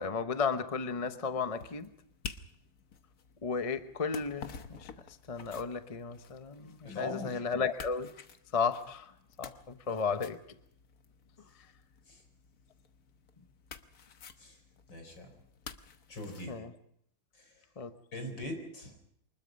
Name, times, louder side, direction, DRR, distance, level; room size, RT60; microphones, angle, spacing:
voice 1, 0.0-1.9 3.4-4.9 5.3-8.1 8.5-9.1 9.4-10.4 16.5-16.7 17.8-17.9, left 5 dB, 25° left, 9 dB, 0.7 m, -34 dB
sound 1, 0.8-16.6, left 6 dB, 55° left, 1.5 m, -51 dB
voice 2, 6.9-7.4 12.1-12.2 14.4-14.6 14.9-15.3 16.1-16.6 17.3-17.5 18.1-19.0, left 2 dB, 75° left, 5 dB, 5.2 m, -41 dB
24.5 x 20.5 x 5.3 m, 0.72 s
omnidirectional pair, 2.0 m